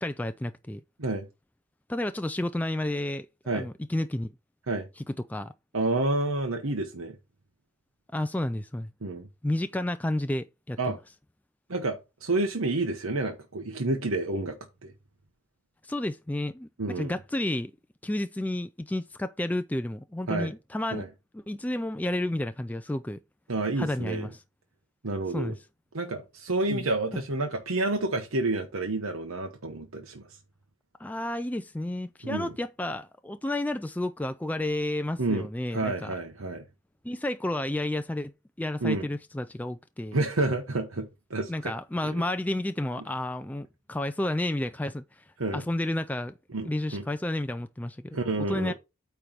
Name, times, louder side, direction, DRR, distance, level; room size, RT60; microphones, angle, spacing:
voice 1, 0.0-0.8 1.9-4.3 5.3-5.5 8.1-8.9 9.4-10.8 15.8-16.7 17.0-17.7 18.0-21.1 21.3-23.2 23.8-24.3 25.3-25.5 26.7-26.8 27.1-27.2 31.0-36.1 37.0-40.2 41.5-45.2 45.5-46.3 46.6-48.7, left 1 dB, 5° left, 0.3 m, -31 dB
voice 2, 5.7-7.2 9.0-9.3 10.8-11.0 11.7-14.9 16.8-17.1 20.3-20.5 20.9-21.1 23.5-24.3 25.0-25.5 25.9-30.4 32.2-32.5 35.2-35.5 35.7-36.6 38.8-39.1 40.1-41.7 42.0-42.2 45.4-45.6 46.5-47.0 48.1-48.7, right 2 dB, 75° right, 1.1 m, -29 dB
8.9 x 3.3 x 5.7 m
head